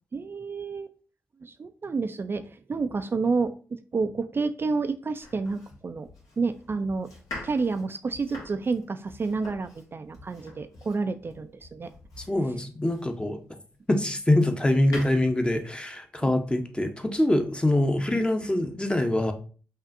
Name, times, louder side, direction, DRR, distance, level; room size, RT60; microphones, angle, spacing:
voice 1, 0.1-0.9 1.4-6.1 6.4-7.1 7.4-11.9 16.2-16.3, right 4 dB, 40° right, 9 dB, 0.3 m, -29 dB
Domestic sounds home sounds, 5.2-13.4 13.9-15.1, left 2 dB, 75° left, 1.3 m, -45 dB
voice 2, 12.3-13.4 13.9-19.3, left 1 dB, 15° left, 6 dB, 0.7 m, -24 dB
5.3 x 2.4 x 2.5 m, 0.40 s
supercardioid pair, 45°, 6 cm